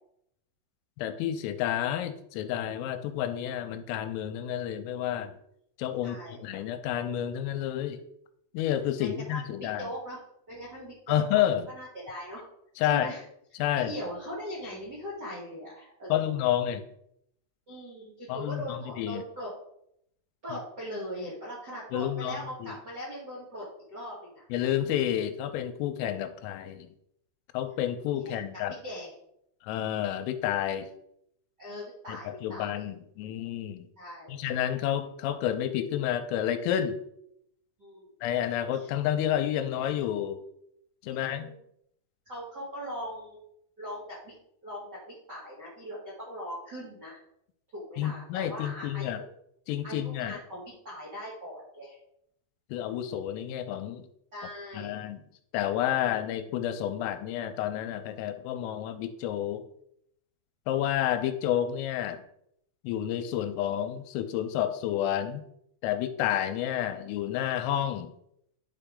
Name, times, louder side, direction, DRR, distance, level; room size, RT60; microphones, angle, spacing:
voice 1, 1.0-5.3 5.8-8.0 8.5-9.9 11.1-11.6 12.8-13.1 13.6-13.9 16.1-16.8 18.3-19.2 21.9-22.7 24.5-26.9 27.5-28.7 29.6-30.9 32.1-33.9 34.3-37.0 38.2-40.4 41.0-41.5 48.0-49.2 49.7-50.4 52.7-54.1 54.7-55.2 55.5-59.6 60.7-62.2 62.8-65.5 65.8-68.1, left 11 dB, 85° left, 9 dB, 3.2 m, -30 dB
voice 2, 6.0-6.5 9.0-10.2 10.5-12.5 12.8-13.2 13.7-16.3 17.7-19.5 20.4-24.4 28.2-28.4 28.7-29.1 31.6-32.8 34.0-34.4 37.8-38.1 38.7-38.9 41.2-41.6 42.2-43.4 43.8-44.3 44.6-47.2 47.7-49.2 49.8-52.0 54.3-55.0, equal, 55° right, -7 dB, 1.1 m, -40 dB
11.5 x 4.6 x 3.8 m, 0.74 s
omnidirectional pair, 5.8 m